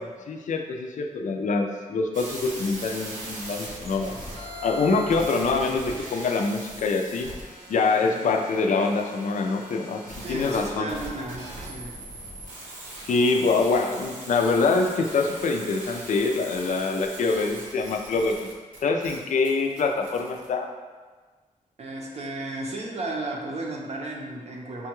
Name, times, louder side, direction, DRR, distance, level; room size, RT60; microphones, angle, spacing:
voice 1, 0.3-4.1 4.6-7.3 7.7-10.0 10.3-10.9 13.1-18.4 18.8-20.7, left 4 dB, 65° left, 3 dB, 0.4 m, -25 dB
sound 1, 2.1-20.5, right 1 dB, 80° right, 0.9 m, -40 dB
voice 2, 8.0-8.3 10.2-12.1 21.8-24.9, right 2 dB, 50° right, -1 dB, 0.6 m, -34 dB
5.4 x 2.2 x 2.9 m, 1.4 s
wide cardioid pair, 145°, 14 cm